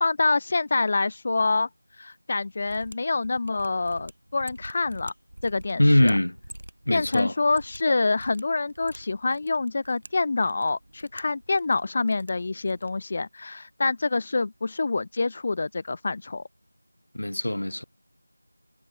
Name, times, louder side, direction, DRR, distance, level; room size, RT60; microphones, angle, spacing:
voice 1, 0.0-1.7 2.0-5.1 5.4-6.2 6.9-16.4, left 3 dB, 25° left, 1.2 m, -26 dB
Mechanisms, 2.6-13.0, right 1 dB, 80° right, 6.0 m, -46 dB
voice 2, 5.8-6.4 6.9-7.3 17.1-17.8, left 1 dB, 70° left, 2.9 m, -22 dB
figure-of-eight pair, 175°, 0 cm